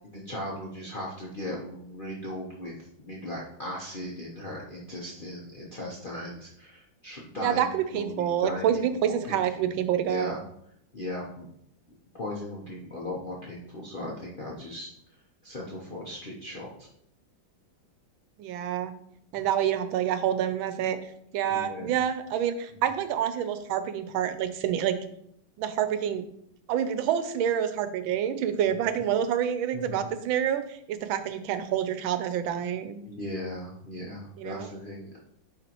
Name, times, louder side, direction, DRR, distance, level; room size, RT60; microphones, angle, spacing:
voice 1, 0.0-9.8 10.0-10.4 10.9-11.5 12.1-14.9 15.4-16.9 21.5-21.9 28.8-29.0 29.7-30.1 33.0-35.2, left 1 dB, 50° left, -4 dB, 0.6 m, -38 dB
voice 2, 7.4-10.4 18.4-18.9 19.3-21.0 21.3-25.0 25.6-26.3 26.7-33.0 34.4-34.7, right 9 dB, 90° right, 10 dB, 1.4 m, -27 dB
9.0 x 3.6 x 2.9 m, 0.72 s
omnidirectional pair, 2.1 m